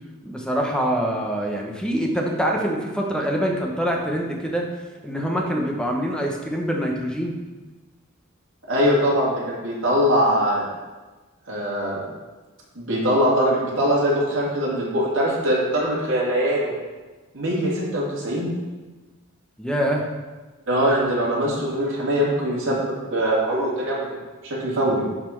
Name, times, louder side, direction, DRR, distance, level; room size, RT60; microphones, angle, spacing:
voice 1, 0.2-4.7 5.0-7.4 19.6-20.1, equal, 5° left, 0 dB, 1.0 m, -25 dB
voice 2, 8.7-10.7 11.5-12.0 12.7-16.7 17.3-18.5 20.7-24.2 24.4-25.0, equal, 60° right, -5 dB, 2.5 m, -22 dB
11.5 x 4.2 x 4.5 m, 1.3 s
head